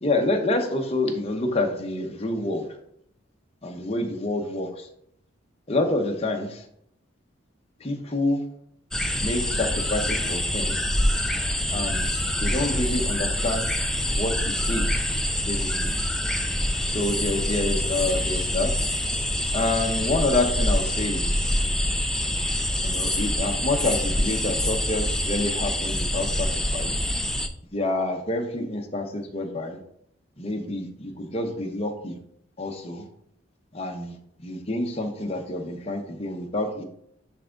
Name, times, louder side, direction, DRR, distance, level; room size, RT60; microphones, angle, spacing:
voice 1, 0.0-2.6 3.6-4.7 5.7-6.5 7.8-8.4 9.2-10.7 11.7-12.1 12.4-13.6 14.1-14.3 14.7-14.9 15.5-15.9 16.9-18.7 19.5-21.3 22.8-26.5 26.7-26.9 27.7-29.8 30.4-32.1 32.6-33.0 33.7-34.1 34.4-36.8, left 2 dB, 30° left, 3 dB, 0.9 m, -27 dB
sound 1, 8.9-27.5, left 1 dB, 5° left, 0.4 m, -25 dB
10.0 x 3.5 x 3.8 m, 0.71 s
head